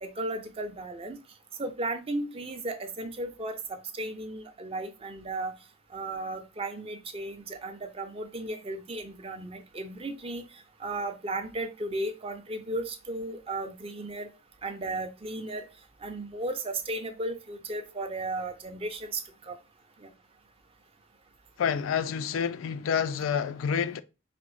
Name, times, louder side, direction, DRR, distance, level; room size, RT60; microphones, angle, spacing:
voice 1, 0.0-1.2 1.6-5.5 5.9-10.4 10.8-14.3 14.6-15.7 16.0-19.6, right 2 dB, 30° right, 0.5 m, -35 dB
voice 2, 21.6-24.0, left 7 dB, 85° left, 0.3 m, -28 dB
4.9 x 2.0 x 3.0 m
head